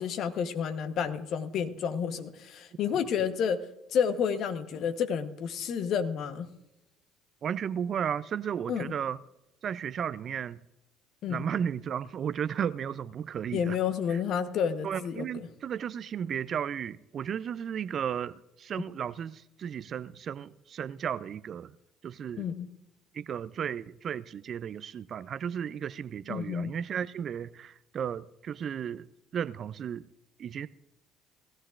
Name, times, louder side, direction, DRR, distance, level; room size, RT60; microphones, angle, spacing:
voice 1, 0.0-3.6 3.9-6.5 8.7-8.9 11.2-11.4 13.5-15.2 22.4-22.7 26.3-26.7, left 7 dB, 60° left, 1.1 m, -30 dB
voice 2, 7.4-9.2 9.6-10.6 11.3-13.8 14.1-14.2 14.8-21.7 22.0-22.5 23.1-29.1 29.3-30.1 30.4-30.7, right 8 dB, 50° right, 0.5 m, -34 dB
19.0 x 14.0 x 2.5 m
hypercardioid pair, 65°, 0 cm